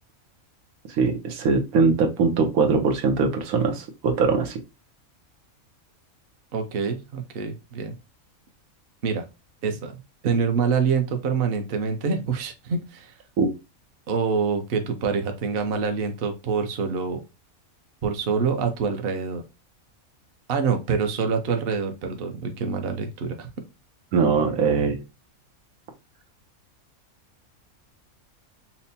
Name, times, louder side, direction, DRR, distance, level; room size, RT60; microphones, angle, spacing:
voice 1, 1.0-4.6 10.2-10.3 13.4-13.5 24.1-25.0, right 4 dB, 90° right, 3 dB, 1.3 m, -21 dB
voice 2, 6.5-7.9 9.0-9.2 9.6-9.9 10.2-13.1 14.1-17.2 18.0-19.4 20.5-23.5, right 5 dB, 50° right, 5 dB, 0.8 m, -26 dB
5.7 x 2.1 x 2.7 m, 0.26 s
omnidirectional pair, 1.4 m